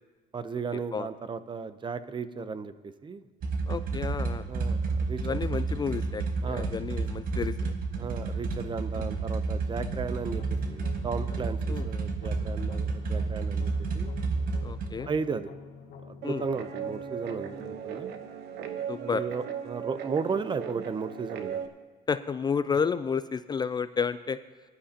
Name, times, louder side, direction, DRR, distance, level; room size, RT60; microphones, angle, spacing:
voice 1, 0.3-3.3 4.5-5.2 6.4-7.0 8.0-14.1 15.1-15.5 16.0-18.1 19.0-21.7 22.7-22.8, right 5 dB, 30° right, 13 dB, 0.6 m, -35 dB
sound 1, 3.4-14.9, right 3 dB, 55° right, 1.4 m, -31 dB
voice 2, 3.7-4.5 5.2-7.7 11.7-11.9 14.6-15.1 16.2-16.4 18.9-19.2 22.1-24.4, left 6 dB, 25° left, 12 dB, 0.3 m, -31 dB
sound 2, 10.4-19.4, left 5 dB, 70° left, 1.8 m, -48 dB
Guitar, 16.2-21.7, right 8 dB, 80° right, 1.0 m, -37 dB
18.0 x 11.5 x 2.8 m, 1.4 s
cardioid pair, 110°, 17 cm